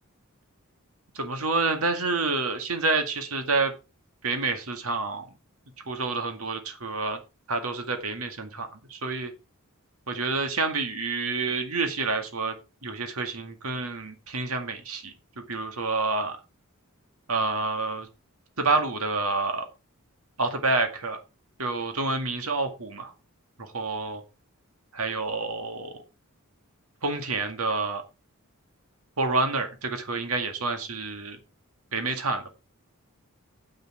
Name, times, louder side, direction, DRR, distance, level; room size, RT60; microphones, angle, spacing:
voice 1, 1.1-3.7 4.2-5.3 5.9-7.2 7.5-9.3 10.1-12.5 12.8-15.1 15.5-16.4 17.3-18.1 18.6-19.7 20.4-21.2 21.6-23.1 23.6-24.2 24.9-26.0 27.0-28.0 29.2-31.4 31.9-32.5, right 3 dB, 75° right, 7 dB, 2.0 m, -28 dB
9.6 x 8.9 x 4.6 m, 0.28 s
head